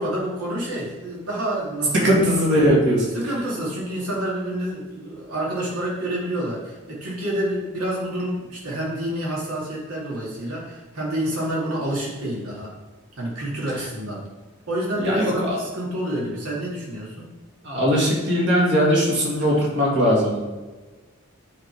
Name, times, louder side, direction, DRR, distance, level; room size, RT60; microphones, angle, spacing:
voice 1, 0.0-2.2 3.1-12.7 13.2-14.2 14.7-17.3, right 1 dB, 85° right, -4 dB, 2.3 m, -28 dB
voice 2, 1.9-3.1 15.0-15.6 17.6-20.6, equal, 55° right, -3 dB, 2.1 m, -20 dB
9.0 x 4.1 x 4.5 m, 1.3 s
head